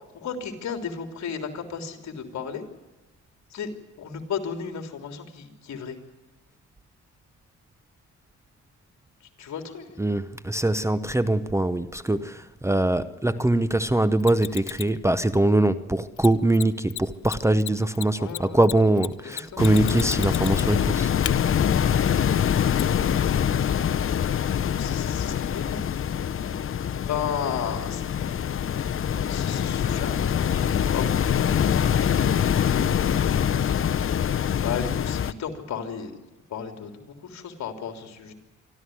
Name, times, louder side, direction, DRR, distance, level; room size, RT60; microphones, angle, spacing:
voice 1, 0.1-2.6 3.5-3.7 4.0-6.0 9.4-10.0 18.2-18.6 19.2-19.7 24.5-25.8 27.1-28.0 29.3-33.6 34.4-36.1 36.5-38.3, left 7 dB, 65° left, 3.4 m, -35 dB
voice 2, 10.0-21.1, right 1 dB, 10° right, 0.8 m, -23 dB
Mechanisms, 14.2-15.0 16.2-16.3 16.5-16.6 16.9-17.0 17.2-20.8 21.2-21.3 22.8-22.9, left 16 dB, 80° left, 0.8 m, -34 dB
sound 1, 19.6-35.3, left 8 dB, 45° left, 0.8 m, -24 dB
26.0 x 13.0 x 9.4 m
cardioid pair, 90°, 30 cm